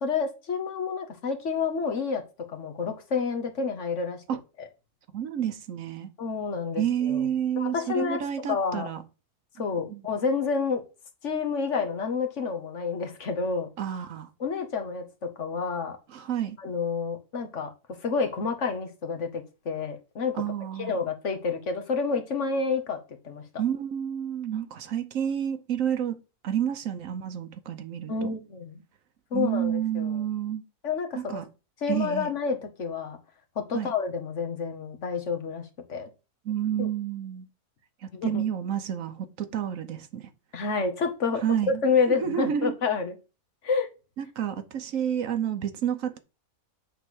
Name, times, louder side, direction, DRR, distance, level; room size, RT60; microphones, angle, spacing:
voice 1, 0.0-2.2 2.5-4.2 4.6-4.7 6.2-7.3 7.6-8.9 9.6-10.8 11.2-13.7 14.4-16.0 16.6-17.7 18.0-20.4 20.8-23.0 23.2-23.4 28.1-28.8 29.3-30.2 30.8-31.4 31.8-33.2 33.6-36.1 36.8-36.9 38.1-38.4 40.5-43.1 43.6-43.9, left 5 dB, 55° left, 1.4 m, -29 dB
voice 2, 5.1-6.1 6.8-9.0 9.9-10.0 13.8-14.3 16.1-16.6 20.4-21.0 23.6-26.2 26.4-28.3 29.3-30.6 31.1-31.4 31.9-32.3 33.7-33.9 36.5-37.5 38.0-40.3 41.4-41.8 42.1-42.7 44.2-46.2, right 9 dB, 65° right, 1.2 m, -29 dB
8.3 x 3.3 x 6.2 m
omnidirectional pair, 1.6 m